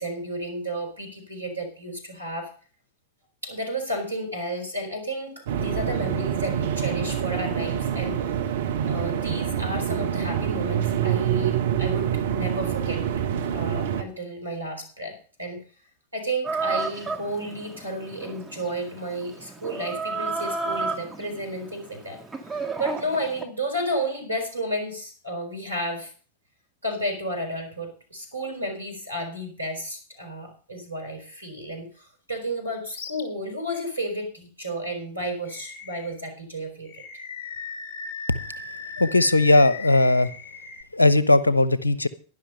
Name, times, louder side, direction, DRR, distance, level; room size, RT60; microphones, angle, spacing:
voice 1, 0.0-2.5 3.4-8.3 8.9-13.0 13.5-15.6 16.1-22.2 22.5-26.1 26.8-37.0, right 1 dB, 85° right, 3 dB, 4.5 m, -32 dB
sound 1, 5.5-14.0, right 9 dB, 60° right, 1.3 m, -26 dB
Chicken rooster, 16.4-23.4, right 4 dB, 10° right, 2.5 m, -32 dB
Animal, 32.9-33.2 33.7-33.8 35.4-36.2 36.8-40.8, left 4 dB, 50° left, 2.1 m, -38 dB
voice 2, 39.0-40.3 40.9-42.1, left 2 dB, 80° left, 16 dB, 0.9 m, -18 dB
11.5 x 11.0 x 5.4 m, 0.40 s
figure-of-eight pair, 90°, 0 cm